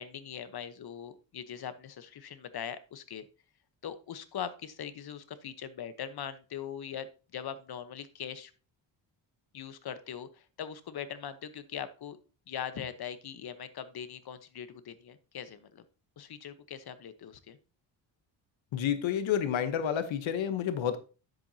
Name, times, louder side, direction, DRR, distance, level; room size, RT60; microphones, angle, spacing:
voice 1, 0.0-3.3 3.8-8.5 9.5-12.2 12.5-15.8 16.2-17.6, left 8 dB, 55° left, 1.1 m, -41 dB
voice 2, 18.7-21.0, left 9 dB, 85° left, 1.1 m, -29 dB
10.5 x 7.9 x 2.8 m
cardioid pair, 105°, 45 cm